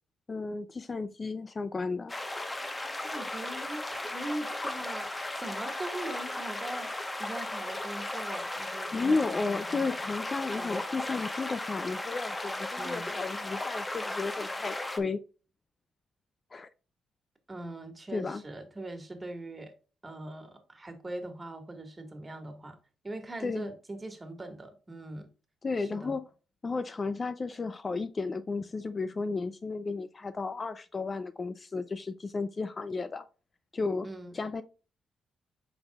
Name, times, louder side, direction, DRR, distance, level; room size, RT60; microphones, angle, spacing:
voice 1, 0.3-2.1 8.9-15.2 16.5-16.7 18.1-18.4 23.4-23.7 25.6-26.2 26.6-33.2 33.7-34.1 34.3-34.6, left 4 dB, 35° left, 0.5 m, -33 dB
sound 1, 2.1-15.0, left 1 dB, 20° left, 1.1 m, -36 dB
voice 2, 3.0-6.9 7.2-9.9 10.5-10.8 12.8-13.2 17.5-19.7 20.0-22.8 23.0-25.3 25.8-26.2 34.0-34.4, right 2 dB, 20° right, 1.8 m, -41 dB
7.8 x 5.3 x 2.4 m
cardioid pair, 80°, 0 cm